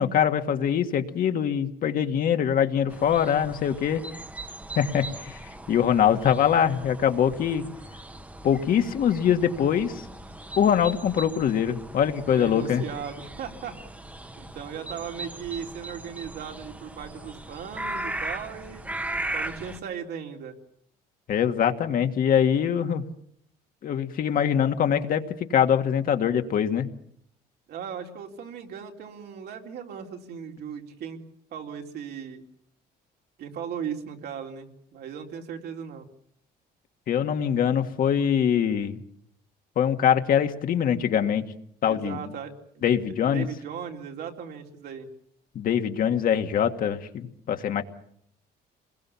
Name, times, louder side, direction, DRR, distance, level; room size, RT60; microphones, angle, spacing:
voice 1, 0.0-4.0 4.8-5.4 5.7-7.6 8.4-10.1 10.6-12.8 21.3-23.0 23.8-26.9 37.1-39.0 39.8-41.5 41.8-42.2 42.8-43.5 45.6-47.8, left 8 dB, 55° left, 7 dB, 1.9 m, -23 dB
sound 1, 2.9-19.8, right 1 dB, 10° right, 1.2 m, -38 dB
voice 2, 12.3-13.7 14.4-18.9 19.3-20.5 27.7-31.2 31.5-32.4 33.4-36.1 41.9-45.1, right 7 dB, 70° right, 3 dB, 3.6 m, -37 dB
27.5 x 21.0 x 7.2 m, 0.67 s
cardioid pair, 110°, 17 cm